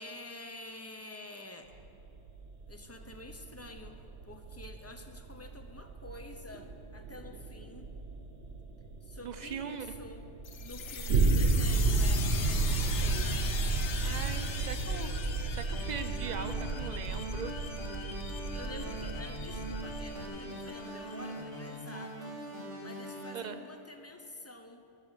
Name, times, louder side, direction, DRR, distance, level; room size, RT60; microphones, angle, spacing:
voice 1, 0.0-1.7 2.7-4.0 4.2-7.9 9.0-10.3 10.6-13.5 18.5-22.4 22.8-24.8, left 2 dB, 20° left, 5 dB, 0.4 m, -48 dB
sound 1, 1.7-20.3, right 3 dB, 70° right, 1.2 m, -33 dB
voice 2, 9.2-9.9 14.0-15.2 15.5-17.5 23.3-23.6, right 7 dB, 50° right, 9 dB, 0.5 m, -40 dB
sound 2, 10.4-21.9, left 6 dB, 75° left, 1.1 m, -42 dB
sound 3, 15.7-23.3, equal, 30° right, 3.4 m, -42 dB
11.5 x 5.7 x 8.9 m, 2.5 s
omnidirectional pair, 1.2 m